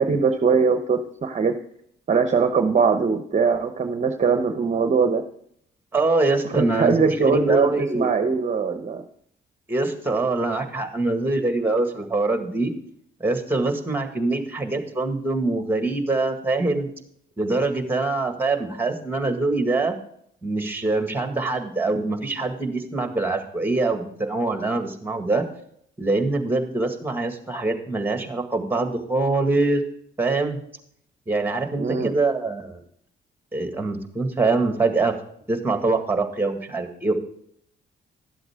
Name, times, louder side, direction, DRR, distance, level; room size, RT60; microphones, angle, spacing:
voice 1, 0.0-1.5 2.1-5.2 6.5-9.0 31.8-32.1, right 5 dB, 35° right, 6 dB, 0.9 m, -21 dB
voice 2, 5.9-8.1 9.7-12.7 13.2-16.9 17.4-19.9 20.4-25.5 26.0-29.8 30.2-30.6 31.3-32.8 33.5-35.1 35.5-37.1, right 3 dB, 10° right, 6 dB, 1.9 m, -24 dB
12.0 x 7.8 x 3.6 m, 0.68 s
cardioid pair, 90°, 20 cm